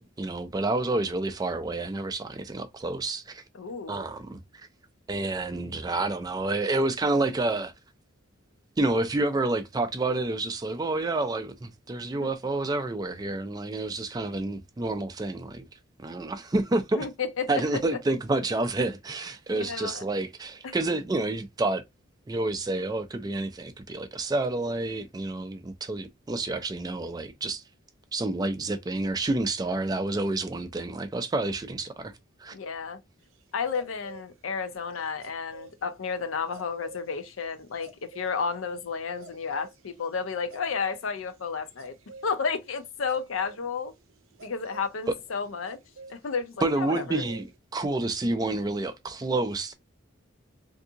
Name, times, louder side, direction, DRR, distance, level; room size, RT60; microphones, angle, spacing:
voice 1, 0.2-3.4 3.9-4.7 5.1-7.7 8.8-15.7 16.0-17.1 17.5-21.8 22.3-27.6 28.1-32.1 32.4-32.5 45.1-45.2 46.6-49.7, right 2 dB, 20° right, 0.3 m, -29 dB
voice 2, 3.5-4.0 12.1-12.3 16.9-17.5 19.5-20.0 20.6-20.8 32.5-33.0 33.5-42.0 42.2-43.9 44.4-45.8 46.1-47.2, left 5 dB, 75° left, 0.6 m, -32 dB
sound 1, 33.7-34.3 35.2-35.7 36.5-37.1 37.8-38.3 39.1-39.8 40.5-41.3 41.8-42.3 43.1-43.8 44.1-46.2 46.9-47.5, right 3 dB, 80° right, 0.6 m, -47 dB
3.5 x 2.6 x 2.7 m
head